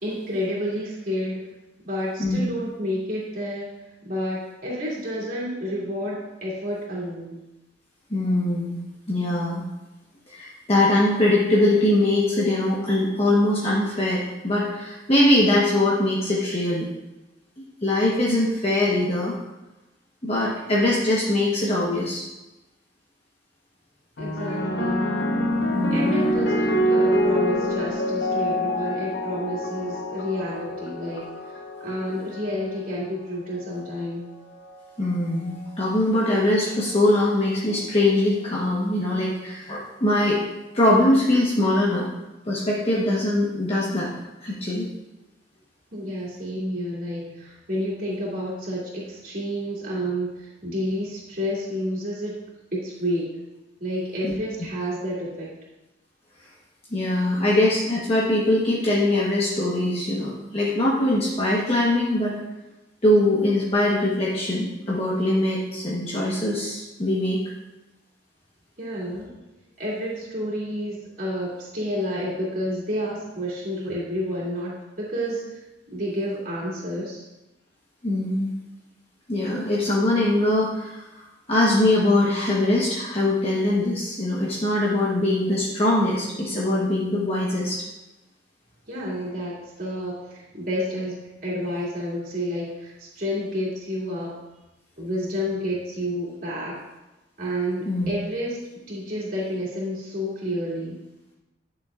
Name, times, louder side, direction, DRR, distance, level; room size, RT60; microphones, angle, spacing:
voice 1, 0.0-1.5 1.8-3.7 4.0-7.4 24.2-25.1 25.9-31.3 31.8-34.3 45.9-52.4 52.7-53.4 53.8-55.5 68.8-69.3 69.8-75.6 75.9-77.2 88.9-91.2 91.4-94.4 95.0-96.8 97.4-98.6 98.9-101.0, equal, 50° right, -6 dB, 2.7 m, -30 dB
voice 2, 8.1-8.8 9.1-9.6 10.3-16.9 17.8-19.3 20.2-22.2 25.7-26.2 35.0-40.4 40.7-42.1 42.5-44.1 44.4-44.9 54.2-54.3 56.9-62.4 63.0-67.4 78.0-78.5 79.3-87.8 97.9-98.1, left 1 dB, 35° left, -6 dB, 1.1 m, -22 dB
sound 1, 24.2-32.7 33.6-34.0, equal, 70° left, 1.0 m, -25 dB
11.0 x 6.5 x 2.5 m, 1.0 s
head